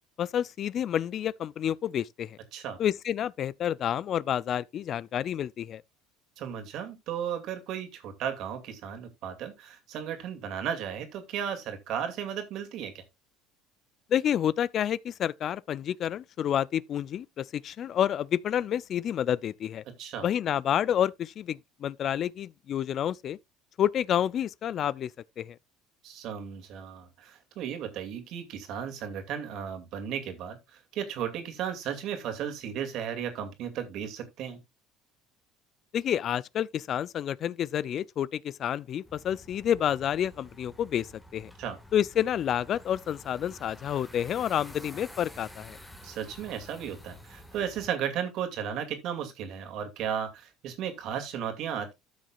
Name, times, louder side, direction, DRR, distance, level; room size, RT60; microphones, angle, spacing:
voice 1, 0.2-2.4 2.8-5.8 14.1-19.8 20.2-23.4 23.8-25.1 25.4-25.6 35.9-41.5 41.9-45.8, left 10 dB, 50° left, 0.4 m, -29 dB
voice 2, 6.4-13.0 20.0-20.3 26.0-34.6 41.6-41.8 46.0-51.9, right 8 dB, 60° right, 2.3 m, -35 dB
sound 1, 39.0-47.9, left 1 dB, 5° left, 1.7 m, -50 dB
13.5 x 6.3 x 2.4 m
supercardioid pair, 95°, 0 cm